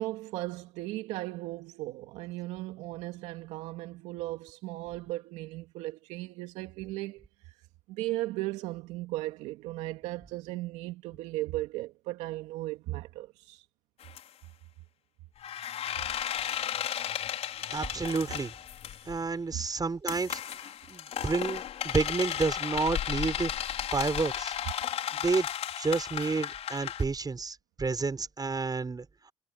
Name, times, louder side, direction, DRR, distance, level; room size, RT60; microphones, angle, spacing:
voice 1, 0.0-7.5 7.9-13.7 19.5-19.6, right 17 dB, 80° right, 2.4 m, -36 dB
sound 1, 14.0-14.2 15.4-19.2 20.1-27.0, left 10 dB, 65° left, 5.4 m, -34 dB
voice 2, 17.7-18.5 19.1-23.5 23.9-24.6 25.2-25.5 25.8-29.1, right 4 dB, 35° right, 5.9 m, -30 dB
hypercardioid pair, 50°, 12 cm